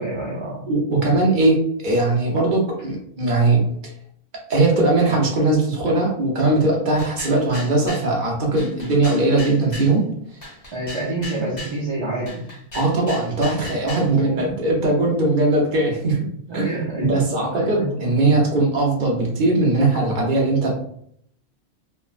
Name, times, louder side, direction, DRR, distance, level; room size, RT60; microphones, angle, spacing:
voice 1, 0.0-0.6 1.0-1.2 10.7-12.4 14.0-14.5 16.5-18.1, right 1 dB, 35° right, -6 dB, 0.5 m, -28 dB
voice 2, 0.7-3.6 4.5-10.0 12.7-16.3 16.5-16.7 17.0-20.7, right 2 dB, 50° right, -2 dB, 0.9 m, -19 dB
sound 1, 7.0-8.1 8.6-9.9 10.4-11.8 12.3-14.1, left 1 dB, 60° left, 1.4 m, -36 dB
3.2 x 2.1 x 2.4 m, 0.67 s
omnidirectional pair, 1.1 m